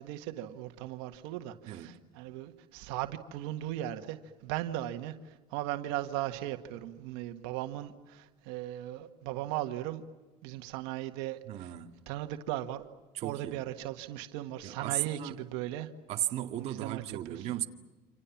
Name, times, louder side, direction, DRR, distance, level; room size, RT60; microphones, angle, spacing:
voice 1, 0.0-10.0 10.4-11.7 12.1-12.8 13.2-15.9 16.6-17.5, right 14 dB, 90° right, 1.8 m, -37 dB
voice 2, 11.5-11.9 13.1-13.6 14.6-15.5 16.1-17.7, right 13 dB, 50° right, 2.0 m, -35 dB
28.0 x 27.5 x 7.3 m
cardioid pair, 145°, 14 cm